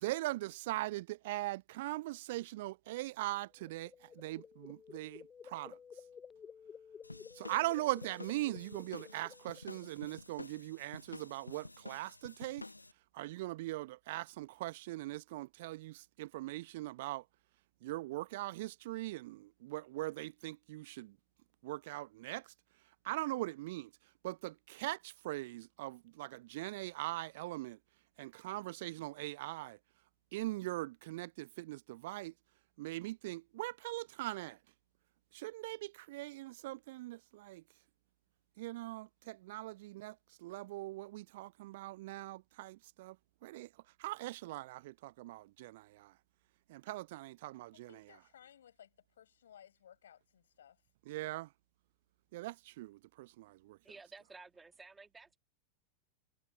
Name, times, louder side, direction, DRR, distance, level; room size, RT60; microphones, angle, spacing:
voice 1, 0.0-5.8 7.4-12.6 13.1-17.2 17.8-21.2 21.6-22.5 23.0-23.9 24.2-27.8 28.2-29.8 30.3-32.3 32.8-34.6 35.3-37.6 38.6-40.2 40.4-43.2 43.4-43.7 44.0-46.1 46.7-47.9 51.1-51.5 52.3-53.8, right 18 dB, 50° right, 0.4 m, -41 dB
sound 1, 3.4-10.1, left 6 dB, 20° left, 0.9 m, -54 dB
sound 2, 7.0-12.9, left 2 dB, 85° left, 0.8 m, -50 dB
voice 2, 47.7-50.8, left 9 dB, 65° left, 7.1 m, -60 dB
voice 3, 53.8-55.4, right 4 dB, 10° right, 3.1 m, -54 dB
figure-of-eight pair, 90°, 0 cm